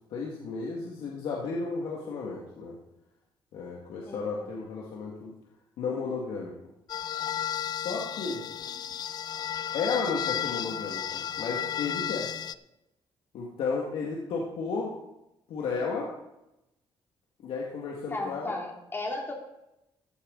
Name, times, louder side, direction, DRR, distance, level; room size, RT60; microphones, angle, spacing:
voice 1, 0.1-2.8 3.5-5.3 5.8-6.5 7.8-8.4 9.7-12.3 13.3-14.9 15.5-16.1 17.4-18.6, left 4 dB, 85° left, -2 dB, 2.2 m, -33 dB
voice 2, 4.1-4.5 18.1-19.3, left 2 dB, 25° left, 0 dB, 2.9 m, -35 dB
sound 1, 6.9-12.5, left 9 dB, 50° left, 0.4 m, -33 dB
15.5 x 9.1 x 4.1 m, 0.89 s
cardioid pair, 120°, 9 cm